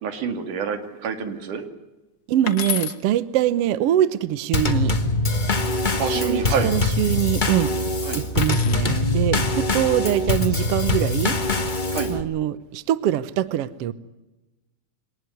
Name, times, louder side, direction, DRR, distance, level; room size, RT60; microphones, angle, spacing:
voice 1, 0.0-1.6 6.0-6.7 8.1-8.2 11.9-12.1, right 6 dB, 90° right, 8 dB, 3.8 m, -27 dB
voice 2, 2.3-4.9 6.1-7.7 8.1-11.4 12.1-13.9, right 12 dB, 65° right, 16 dB, 1.7 m, -23 dB
sound 1, 2.5-3.0 5.2-5.8 8.4-8.9 10.2-10.6, left 9 dB, 55° left, 2.2 m, -31 dB
Drum kit / Snare drum / Bass drum, 4.5-12.2, left 2 dB, 30° left, 0.8 m, -23 dB
23.5 x 19.0 x 9.6 m, 1.0 s
omnidirectional pair, 3.5 m